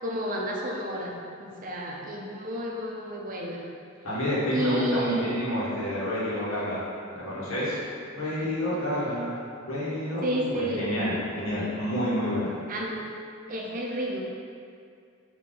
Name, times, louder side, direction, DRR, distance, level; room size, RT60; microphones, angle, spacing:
voice 1, 0.0-3.6 4.5-5.3 8.4-8.8 10.2-10.9 12.7-13.1 13.5-14.2, equal, 40° right, -2 dB, 0.5 m, -31 dB
voice 2, 4.0-6.8 7.1-7.8 8.2-9.3 9.7-12.5, equal, 85° left, -9 dB, 1.3 m, -29 dB
4.0 x 2.8 x 3.6 m, 2.3 s
head